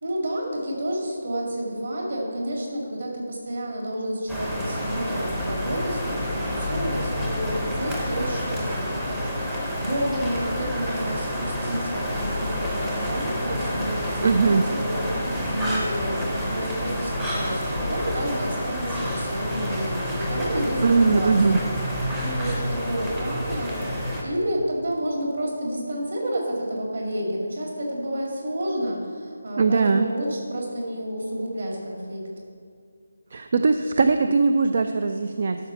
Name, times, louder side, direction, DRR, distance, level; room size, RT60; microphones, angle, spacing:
voice 1, 0.0-9.4 9.8-21.6 22.2-32.2, equal, 50° right, -1 dB, 2.6 m, -30 dB
sound 1, 4.3-24.2, equal, 5° right, 0.7 m, -29 dB
voice 2, 14.2-14.7 20.8-21.6 29.6-30.1 33.3-35.7, right 4 dB, 35° right, 8 dB, 0.3 m, -20 dB
12.5 x 5.7 x 5.9 m, 2.3 s
hypercardioid pair, 180°, 0 cm